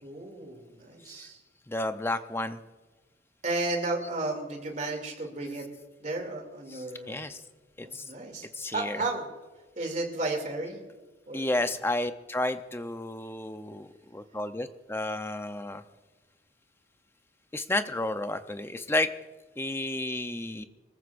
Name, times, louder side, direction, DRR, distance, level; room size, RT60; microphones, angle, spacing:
voice 1, 0.0-1.4 3.4-5.7 6.0-7.3 7.8-8.5 8.7-9.2 9.8-10.8 11.3-11.5, right 2 dB, 45° right, 3 dB, 2.6 m, -33 dB
voice 2, 1.7-2.6 6.7-7.4 7.8-8.0 8.5-9.1 11.3-15.8 17.5-19.1 19.6-20.7, left 1 dB, 15° left, 9 dB, 0.6 m, -32 dB
24.5 x 14.5 x 2.6 m, 1.2 s
head